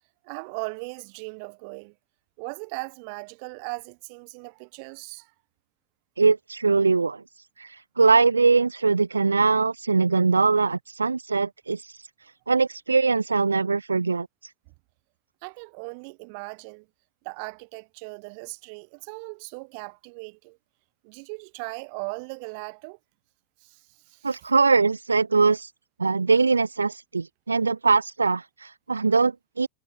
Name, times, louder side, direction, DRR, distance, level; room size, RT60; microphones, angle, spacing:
voice 1, 0.2-1.9 2.4-5.3 15.4-16.9 17.2-20.6 21.0-23.0 23.6-23.8 24.1-24.5, right 35 dB, 45° right, 2.3 m, -38 dB
voice 2, 6.2-7.2 7.6-12.0 12.5-14.3 24.2-25.7 26.0-29.7, right 4 dB, 80° right, 0.7 m, -22 dB
figure-of-eight pair, 90°, 0 cm